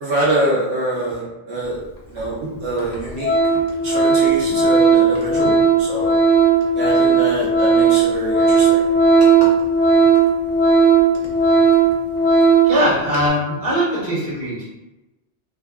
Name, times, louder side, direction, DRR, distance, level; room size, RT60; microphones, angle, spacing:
voice 1, 0.0-1.8 2.1-6.1 6.8-8.8 9.4-9.5, right 1 dB, 75° right, -6 dB, 0.9 m, -25 dB
Organ, 2.2-2.3 2.8-2.9 3.2-12.8 13.1-13.3, right 4 dB, 50° left, 0.5 m, -15 dB
voice 2, 12.6-14.6, equal, 35° right, -9 dB, 1.0 m, -20 dB
2.5 x 2.3 x 2.2 m, 1.0 s
omnidirectional pair, 1.1 m